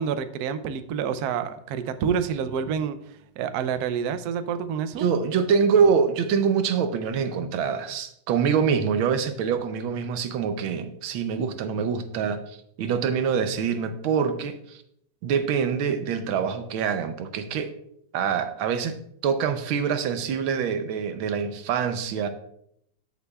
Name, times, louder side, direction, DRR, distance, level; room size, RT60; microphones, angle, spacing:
voice 1, 0.0-3.0 3.4-5.1, right 7 dB, 70° right, 11 dB, 0.9 m, -28 dB
voice 2, 5.0-14.8 15.2-17.7 18.1-18.9 19.2-22.3, right 6 dB, 90° right, 9 dB, 1.6 m, -25 dB
13.5 x 6.7 x 2.3 m, 0.72 s
omnidirectional pair, 2.2 m